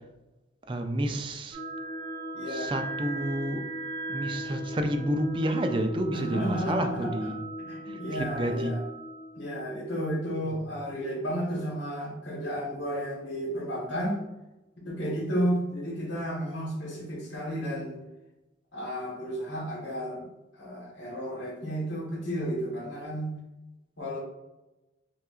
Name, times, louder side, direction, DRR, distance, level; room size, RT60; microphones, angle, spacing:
voice 1, 0.7-1.6 2.5-3.6 4.1-7.3 7.9-8.7, right 1 dB, 25° right, 5 dB, 0.4 m, -30 dB
sound 1, 1.5-11.0, right 1 dB, 55° right, 1.2 m, -38 dB
voice 2, 2.3-2.7 6.1-7.3 7.6-8.8 9.4-14.2 14.8-18.0 18.7-20.3 20.5-23.3 24.0-24.2, equal, 70° left, -3 dB, 1.2 m, -32 dB
5.6 x 2.4 x 2.4 m, 0.99 s
head